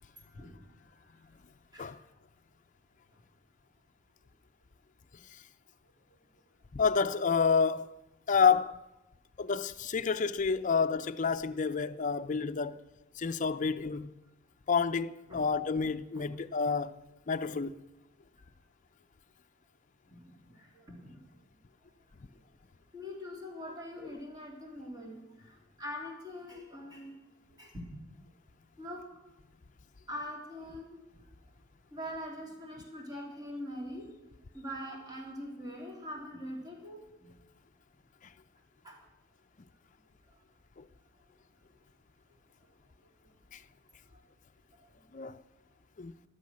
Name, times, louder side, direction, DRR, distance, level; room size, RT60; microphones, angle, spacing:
voice 1, 0.3-1.1 1.7-1.9 15.3-15.4 16.1-16.4 20.1-21.2 22.9-27.1 27.6-27.9 28.8-29.0 30.1-31.0 31.9-34.1 34.5-37.3 38.8-39.0, equal, 20° right, 3.3 m, -43 dB
voice 2, 6.7-7.9 8.3-8.8 9.4-12.8 13.2-14.1 14.7-16.9 17.3-17.8 40.8-40.9 43.5-43.6 45.1-45.4 46.0-46.1, left 5 dB, 40° left, 0.5 m, -29 dB
14.0 x 12.0 x 6.3 m
head